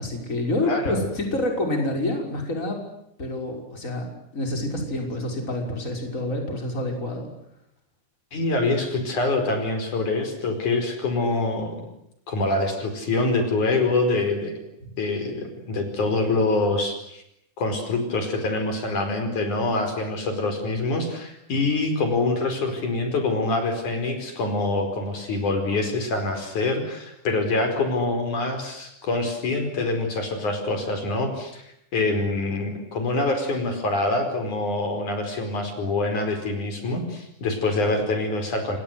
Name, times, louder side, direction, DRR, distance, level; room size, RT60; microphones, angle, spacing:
voice 1, 0.0-2.8 3.2-4.1 4.3-7.3 14.8-14.9, left 1 dB, 20° left, 3 dB, 6.2 m, -27 dB
voice 2, 0.6-1.0 8.3-11.9 12.3-14.5 15.0-17.2 17.6-31.7 31.9-38.8, left 2 dB, 65° left, 6 dB, 6.3 m, -25 dB
29.0 x 24.0 x 8.0 m, 0.79 s
omnidirectional pair, 3.7 m